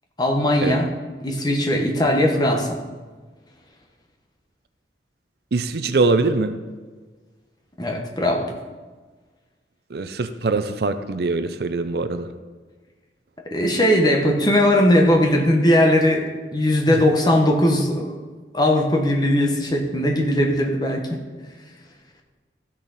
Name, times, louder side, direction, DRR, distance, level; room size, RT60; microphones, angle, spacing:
voice 1, 0.2-0.9 1.2-2.8 7.8-8.5 13.5-16.2 16.5-18.2 18.5-21.2, left 1 dB, 25° left, 2 dB, 1.2 m, -19 dB
voice 2, 5.5-6.6 9.9-12.3 16.9-17.0, right 3 dB, 60° right, 10 dB, 0.5 m, -23 dB
14.5 x 6.4 x 4.1 m, 1.4 s
head